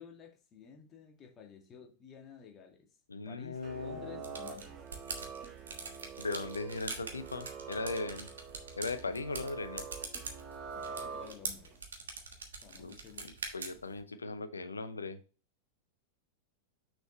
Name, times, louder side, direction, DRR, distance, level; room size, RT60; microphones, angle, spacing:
voice 1, 0.0-2.9 3.3-5.0 10.7-11.8 12.6-13.3, left 7 dB, 30° left, 2 dB, 1.9 m, -53 dB
voice 2, 3.1-4.3 6.2-8.3 8.8-9.8 12.8-12.9 13.2-15.2, left 3 dB, 75° left, 11 dB, 0.7 m, -38 dB
sound 1, 3.5-11.8, right 6 dB, 30° right, 1.2 m, -46 dB
sound 2, 4.2-14.0, right 4 dB, 70° right, 1.3 m, -44 dB
6.7 x 6.3 x 3.1 m, 0.34 s
figure-of-eight pair, 90°, 0 cm